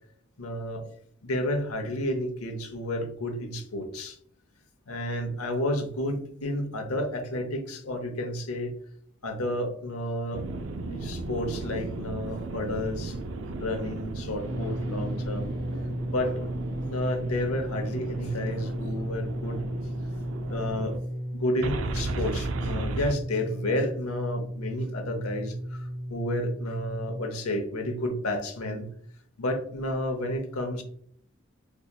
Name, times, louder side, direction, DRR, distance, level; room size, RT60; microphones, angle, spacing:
voice 1, 0.4-0.8 1.2-4.2 4.9-8.7 9.2-10.4 10.9-13.2 13.6-15.5 16.1-19.6 20.5-21.0 21.3-28.9 29.4-30.8, left 1 dB, 90° left, 5 dB, 0.8 m, -31 dB
sound 1, 10.3-21.0 21.6-23.1, right 3 dB, 60° right, 0.4 m, -36 dB
sound 2, 14.3-27.2, equal, 15° left, 0.7 m, -34 dB
4.6 x 2.8 x 2.2 m, 0.62 s
head